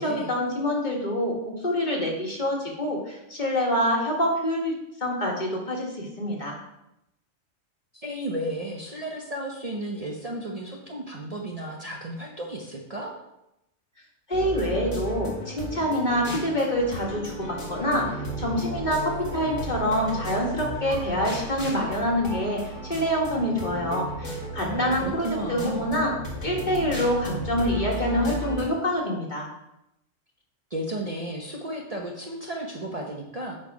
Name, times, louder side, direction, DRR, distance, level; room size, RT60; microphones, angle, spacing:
voice 1, 0.0-6.6 14.3-26.1 26.4-29.5, equal, 35° left, -2 dB, 2.0 m, -26 dB
voice 2, 7.9-13.1 24.7-25.9 30.7-33.6, right 1 dB, 30° right, -1 dB, 1.0 m, -33 dB
sound 1, 14.3-28.7, equal, 65° left, 2.1 m, -34 dB
7.8 x 6.0 x 4.8 m, 0.86 s
omnidirectional pair, 1.4 m